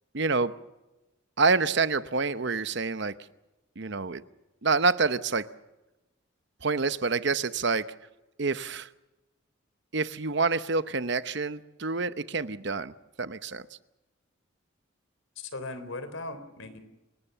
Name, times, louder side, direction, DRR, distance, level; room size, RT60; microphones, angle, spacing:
voice 1, 0.1-0.5 1.4-3.2 3.8-4.2 4.6-5.5 6.6-7.9 8.4-8.9 9.9-12.9 13.2-13.7, right 4 dB, 55° right, 13 dB, 0.9 m, -27 dB
voice 2, 15.4-16.8, left 2 dB, 75° left, 11 dB, 3.6 m, -38 dB
27.0 x 18.5 x 6.9 m, 1.0 s
head